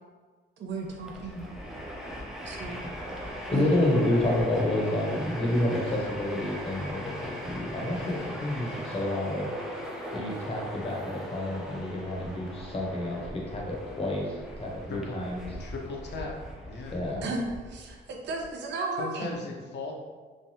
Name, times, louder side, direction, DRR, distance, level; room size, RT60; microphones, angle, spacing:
voice 1, 0.6-1.5 2.4-2.8 3.5-3.7 17.2-19.4, right 3 dB, 65° right, 1 dB, 0.5 m, -34 dB
Train, 0.9-18.5, equal, ahead, 0.5 m, -40 dB
voice 2, 3.1-9.5 10.1-15.4 16.9-17.2, left 1 dB, 30° left, -1 dB, 0.8 m, -29 dB
voice 3, 15.6-16.3 16.7-17.0 19.0-19.9, left 3 dB, 60° left, -1 dB, 0.6 m, -37 dB
3.2 x 2.2 x 2.7 m, 1.4 s
cardioid pair, 90°, 20 cm